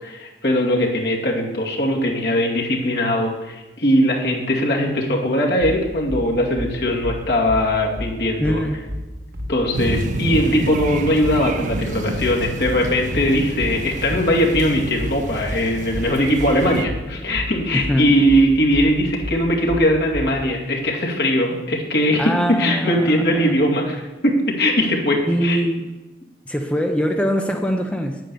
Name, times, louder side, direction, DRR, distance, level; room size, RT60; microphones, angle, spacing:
voice 1, 0.0-8.6 9.5-25.6, equal, 70° left, -1 dB, 2.4 m, -20 dB
sound 1, 5.6-20.4, left 1 dB, 65° right, 1.5 m, -31 dB
voice 2, 8.4-8.8 10.2-10.7 17.7-18.1 22.2-23.5 25.2-25.9 26.5-28.2, equal, 5° left, 3 dB, 0.7 m, -23 dB
sound 2, 9.7-16.9, right 2 dB, 45° right, 0.7 m, -29 dB
9.1 x 9.0 x 7.1 m, 1.2 s
head